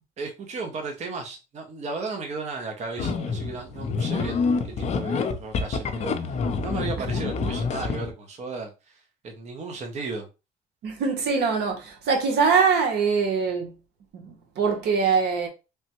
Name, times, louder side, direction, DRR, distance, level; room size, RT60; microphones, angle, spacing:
voice 1, 0.2-10.3, right 4 dB, 40° right, 0.7 m, -35 dB
sound 1, 3.0-8.1, left 4 dB, 40° left, 0.5 m, -27 dB
voice 2, 10.8-13.7 14.1-15.5, right 5 dB, 80° right, 0.9 m, -23 dB
3.3 x 2.1 x 2.9 m
cardioid pair, 110°, 17 cm